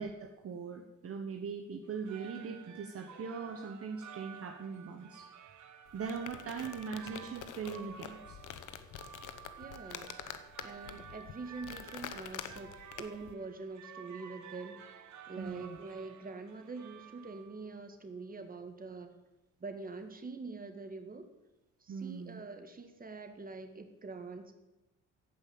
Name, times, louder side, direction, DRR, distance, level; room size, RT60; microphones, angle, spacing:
voice 1, 0.0-5.3 5.9-8.4 15.4-15.8 21.9-22.4, right 5 dB, 50° right, 4 dB, 1.3 m, -41 dB
sound 1, 1.8-17.7, right 8 dB, 70° right, 1.4 m, -52 dB
sound 2, 5.9-13.3, left 10 dB, 85° left, 1.0 m, -47 dB
voice 2, 9.6-10.1 10.6-12.7 13.0-14.8 15.3-19.1 19.6-21.3 21.8-24.5, right 3 dB, 30° right, 6 dB, 1.9 m, -44 dB
15.5 x 5.6 x 8.6 m, 0.99 s
cardioid pair, 90°, 30 cm